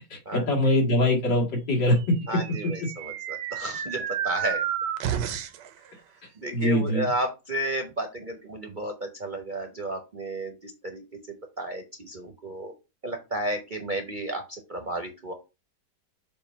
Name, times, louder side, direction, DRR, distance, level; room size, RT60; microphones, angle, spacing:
voice 1, 0.1-2.2 6.5-7.1, left 1 dB, 80° left, -1 dB, 2.8 m, -23 dB
sound 1, 2.1-5.7, right 9 dB, 80° right, 1.4 m, -31 dB
voice 2, 2.3-4.6 6.4-12.7 13.0-15.3, right 1 dB, 40° right, 4 dB, 0.8 m, -33 dB
7.1 x 2.6 x 5.2 m, 0.26 s
omnidirectional pair, 1.9 m